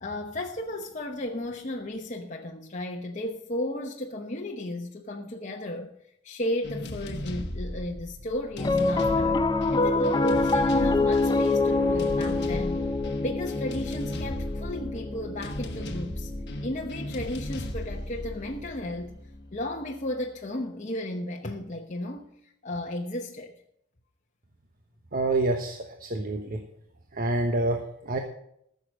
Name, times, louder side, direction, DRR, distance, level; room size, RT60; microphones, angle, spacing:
voice 1, 0.0-5.9 6.2-9.4 9.7-12.8 13.2-16.3 16.6-19.1 19.5-23.6, left 1 dB, 35° left, 1.0 m, -34 dB
sound 1, 6.6-19.4, left 1 dB, 55° left, 1.2 m, -36 dB
Piano, 8.6-19.1, left 3 dB, 20° left, 0.6 m, -27 dB
voice 2, 25.1-26.6 27.1-28.2, right 2 dB, 45° right, 1.1 m, -27 dB
14.5 x 6.9 x 6.1 m
head